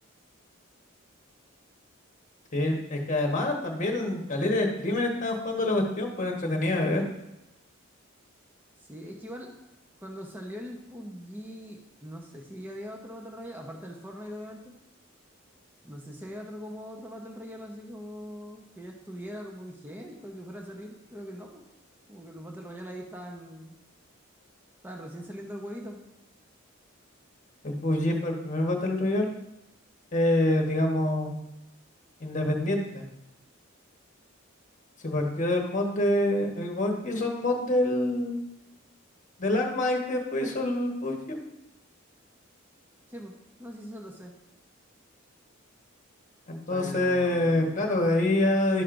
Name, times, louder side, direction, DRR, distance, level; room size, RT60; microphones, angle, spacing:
voice 1, 2.5-7.0 27.6-29.3 30.1-31.4 32.2-33.0 35.0-38.4 39.4-41.4 46.5-48.8, left 1 dB, 40° left, 2 dB, 1.2 m, -26 dB
voice 2, 8.9-9.5 10.0-14.7 15.8-21.6 22.1-23.7 24.8-26.0 43.1-43.3 43.6-44.3 46.7-48.0, equal, 10° right, 1 dB, 0.9 m, -41 dB
12.0 x 6.4 x 2.5 m, 0.91 s
head